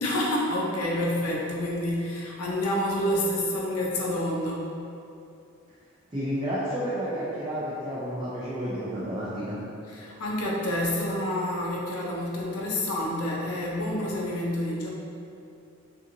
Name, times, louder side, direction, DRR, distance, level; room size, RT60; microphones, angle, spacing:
voice 1, 0.0-4.7 9.9-14.9, left 1 dB, 85° left, -3 dB, 0.5 m, -28 dB
voice 2, 6.1-9.6, equal, 20° right, -10 dB, 0.4 m, -31 dB
2.7 x 2.5 x 2.6 m, 2.6 s
head